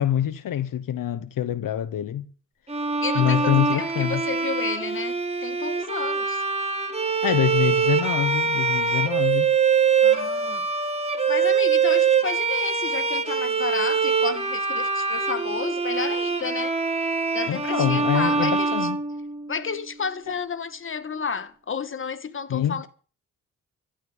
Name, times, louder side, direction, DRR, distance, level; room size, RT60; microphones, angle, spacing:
voice 1, 0.0-2.3 3.1-4.2 7.2-9.5 17.5-19.0 20.3-20.4 22.5-22.9, left 10 dB, 75° left, 1.1 m, -25 dB
Bowed string instrument, 2.7-19.7, right 5 dB, 20° right, 3.0 m, -24 dB
voice 2, 3.0-5.1 5.4-6.4 10.0-10.6 11.3-16.7 17.3-18.7 19.5-22.9, left 6 dB, 40° left, 1.5 m, -31 dB
15.0 x 9.0 x 7.5 m
cardioid pair, 85°, 33 cm